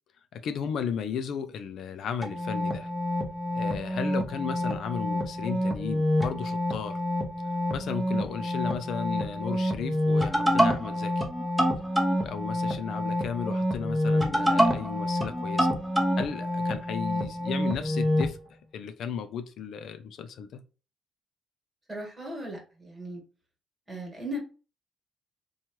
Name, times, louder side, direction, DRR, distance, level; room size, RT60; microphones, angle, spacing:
voice 1, 0.3-2.9 3.5-7.0 7.7-11.3 12.2-15.7 16.2-18.4 18.7-20.6, left 7 dB, 70° left, 0.3 m, -35 dB
sound 1, 2.2-18.3, equal, ahead, 0.8 m, -27 dB
voice 2, 21.9-23.2 23.9-24.4, equal, 20° right, 1.4 m, -37 dB
2.8 x 2.3 x 2.9 m
cardioid pair, 90°, 0 cm